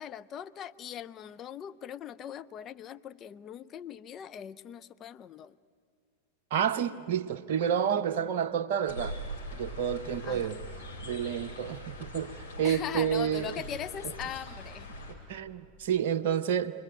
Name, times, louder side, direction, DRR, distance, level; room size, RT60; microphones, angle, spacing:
voice 1, 0.0-5.6 10.2-10.5 12.6-14.9, left 9 dB, 30° left, 0.6 m, -40 dB
voice 2, 6.5-9.2 9.5-10.6 11.0-13.5 15.1-16.7, right 8 dB, 50° right, 0.8 m, -30 dB
sound 1, 8.9-15.1, equal, 65° left, 4.9 m, -42 dB
27.5 x 21.0 x 9.5 m
figure-of-eight pair, 90°, 0 cm